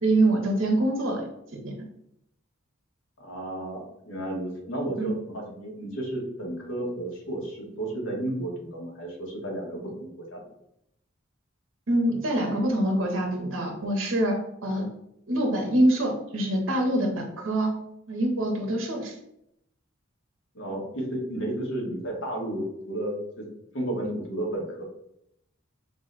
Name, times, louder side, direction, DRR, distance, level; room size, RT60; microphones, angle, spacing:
voice 1, 0.0-1.3 1.6-1.7 5.0-5.1 11.9-14.9 15.3-17.7 18.1-19.2, right 1 dB, 75° right, 2 dB, 0.8 m, -25 dB
voice 2, 3.2-10.4 20.5-23.4 23.7-24.8, right 1 dB, 70° left, -1 dB, 1.1 m, -32 dB
3.7 x 2.1 x 3.8 m, 0.77 s
head